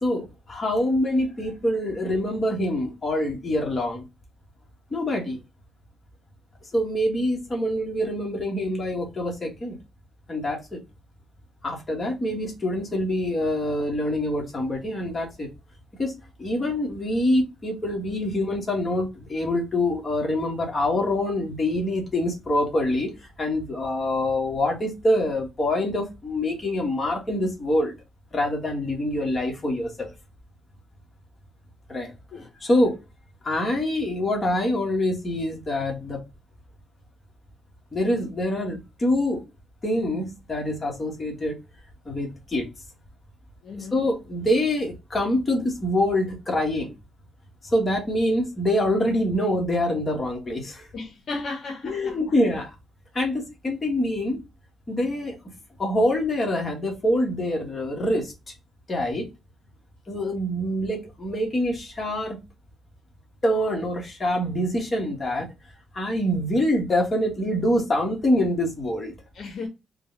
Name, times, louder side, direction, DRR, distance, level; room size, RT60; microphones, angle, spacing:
voice 1, 0.0-4.0 4.9-5.4 6.7-9.8 10.3-10.8 11.6-15.5 16.0-23.1 23.4-27.9 28.3-30.1 31.9-32.1 32.6-33.0 33.4-36.2 37.9-39.4 39.8-41.6 42.0-42.7 43.7-46.9 47.6-50.9 51.8-52.7 53.1-54.4 54.9-55.4 55.8-58.5 58.9-59.3 60.1-62.4 63.4-65.5 65.9-69.1, left 1 dB, 25° left, 1.3 m, -25 dB
voice 2, 43.6-44.0 50.9-52.2 69.4-69.7, left 3 dB, 55° left, 0.8 m, -34 dB
3.8 x 2.2 x 3.7 m
cardioid pair, 145°, 0 cm